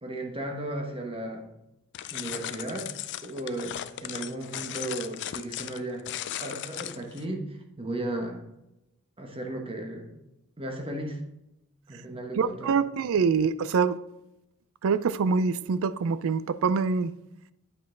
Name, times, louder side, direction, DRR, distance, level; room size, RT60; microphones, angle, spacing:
voice 1, 0.0-1.5 2.1-2.9 3.2-6.1 6.4-8.4 9.2-10.1 10.6-11.2 11.9-12.7, right 1 dB, 25° right, 1.1 m, -35 dB
sound 1, 1.9-7.2, left 12 dB, 55° left, 0.4 m, -37 dB
voice 2, 12.4-14.0 14.8-17.1, right 5 dB, 65° right, 0.4 m, -25 dB
8.4 x 5.3 x 3.8 m
head